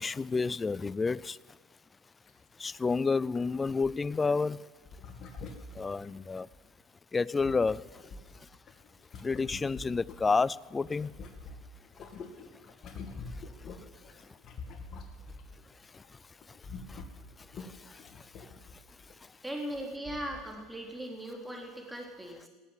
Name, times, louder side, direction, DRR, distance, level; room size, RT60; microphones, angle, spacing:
voice 1, 0.0-1.4 2.6-4.7 5.7-6.5 7.1-8.5 9.2-11.1 13.3-13.4 13.7-13.9 14.1-14.4 15.9-16.2 16.5-17.0 17.4-19.3, left 4 dB, 20° left, 0.4 m, -31 dB
sound 1, 2.3-2.4 2.7-2.8 3.3-4.3 4.9-6.6 7.1-10.5 10.8-15.6 15.9-16.2 16.4-19.1 19.7-19.8 20.1-20.5 21.0-21.1, left 3 dB, 45° left, 2.2 m, -46 dB
voice 2, 19.4-22.5, right 1 dB, 5° right, 3.8 m, -39 dB
18.5 x 8.2 x 9.2 m
hypercardioid pair, 85°, 0 cm